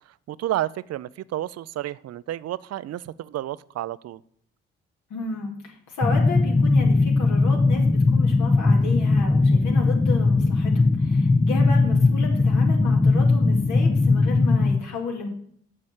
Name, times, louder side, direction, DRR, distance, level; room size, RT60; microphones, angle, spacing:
voice 1, 0.1-4.2, right 13 dB, 55° right, 19 dB, 0.5 m, -31 dB
voice 2, 5.1-15.3, left 3 dB, 75° left, 0 dB, 2.3 m, -32 dB
sound 1, 6.0-14.8, left 3 dB, 15° left, 0.6 m, -19 dB
6.5 x 6.3 x 7.4 m, 0.66 s
hypercardioid pair, 50°, 30 cm